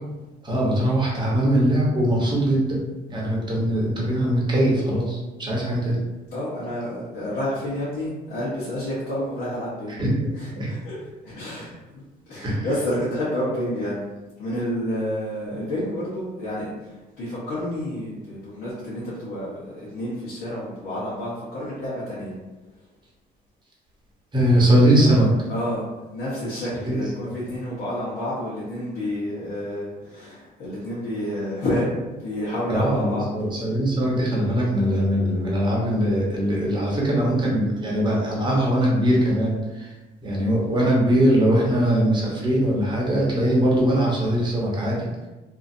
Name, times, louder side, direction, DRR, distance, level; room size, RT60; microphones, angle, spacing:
voice 1, 0.4-2.8 3.1-6.0 10.0-10.3 10.5-10.7 12.4-12.7 24.3-25.3 26.9-27.0 27.2-27.3 32.7-39.9 40.2-45.1, right 1 dB, 25° right, -4 dB, 1.0 m, -21 dB
voice 2, 6.3-10.0 10.3-11.0 11.2-14.0 14.4-22.3 25.5-33.3, left 1 dB, 70° left, -9 dB, 1.1 m, -29 dB
2.8 x 2.6 x 2.6 m, 1.1 s
cardioid pair, 110°, 17 cm